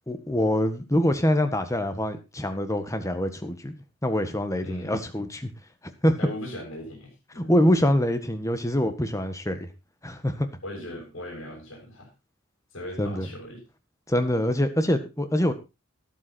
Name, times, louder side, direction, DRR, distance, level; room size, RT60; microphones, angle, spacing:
voice 1, 0.1-5.5 6.0-6.2 7.4-9.7 10.0-10.5 13.0-13.3 14.1-15.5, equal, 15° left, 1.6 m, -25 dB
voice 2, 4.6-5.0 6.2-7.5 10.6-12.1 12.7-13.6, left 1 dB, 75° left, 6.3 m, -38 dB
12.5 x 11.0 x 4.3 m
head